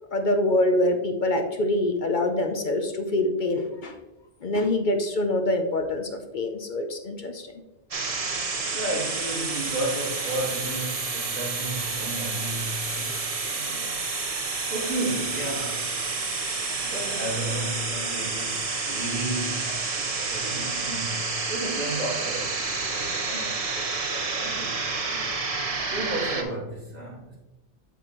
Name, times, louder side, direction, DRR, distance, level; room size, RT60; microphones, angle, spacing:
voice 1, 0.1-3.9 4.4-7.5, left 1 dB, 50° left, 5 dB, 0.7 m, -25 dB
sound 1, 7.9-26.4, right 3 dB, 35° right, 0.8 m, -29 dB
voice 2, 8.6-13.2 13.5-15.9 16.4-25.3 25.6-27.4, right 1 dB, 85° right, -6 dB, 3.0 m, -34 dB
7.9 x 7.0 x 2.9 m, 1.0 s
omnidirectional pair, 1.2 m